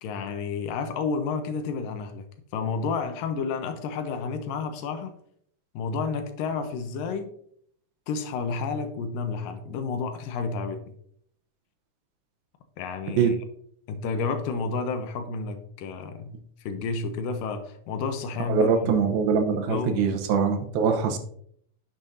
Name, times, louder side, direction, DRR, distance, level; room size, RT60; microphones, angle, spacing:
voice 1, 0.0-2.3 2.5-5.2 5.8-7.3 8.1-10.8 12.8-13.4 13.9-18.9 19.7-20.0, left 4 dB, 80° left, 8 dB, 2.3 m, -30 dB
voice 2, 18.5-21.2, right 6 dB, 80° right, 6 dB, 2.8 m, -23 dB
10.5 x 7.3 x 2.7 m, 0.65 s
omnidirectional pair, 4.2 m